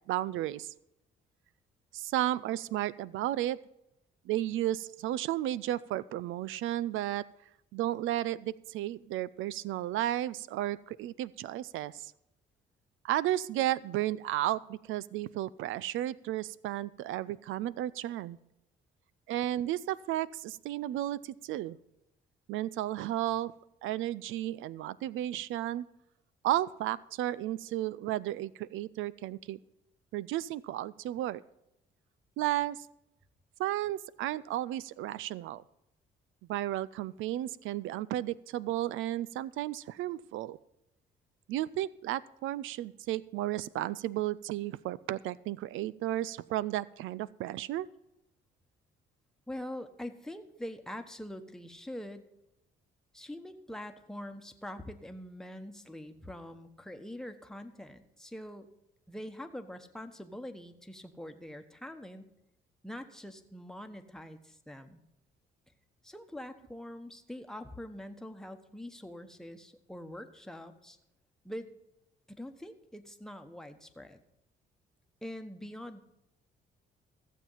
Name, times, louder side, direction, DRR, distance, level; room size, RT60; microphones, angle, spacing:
voice 1, 0.1-0.7 1.9-3.6 4.3-7.2 7.7-12.1 13.0-18.4 19.3-21.8 22.5-23.5 23.8-25.9 26.4-29.6 30.1-31.4 32.4-32.9 33.6-35.6 36.5-40.6 41.5-47.9, right 14 dB, 85° right, 19 dB, 0.4 m, -33 dB
voice 2, 49.5-52.3 53.1-58.7 59.1-62.3 62.8-65.0 66.0-71.0 71.4-71.7 72.3-74.2 75.2-76.0, left 1 dB, 5° left, 6 dB, 1.1 m, -44 dB
15.0 x 7.3 x 5.7 m, 0.84 s
cardioid pair, 90°, 20 cm